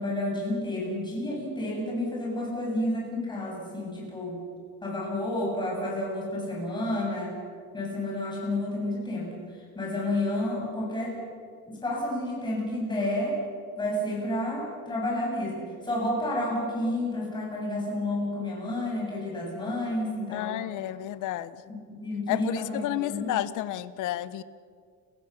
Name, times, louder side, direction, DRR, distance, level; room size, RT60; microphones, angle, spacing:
voice 1, 0.0-4.4 4.8-7.4 7.7-9.4 9.7-11.2 11.7-13.4 13.8-20.6 21.9-23.3, left 1 dB, 10° left, -3 dB, 7.6 m, -30 dB
voice 2, 20.3-21.6 22.3-24.4, left 14 dB, 60° left, 16 dB, 1.0 m, -31 dB
30.0 x 16.5 x 7.0 m, 2.1 s
cardioid pair, 160°, 35 cm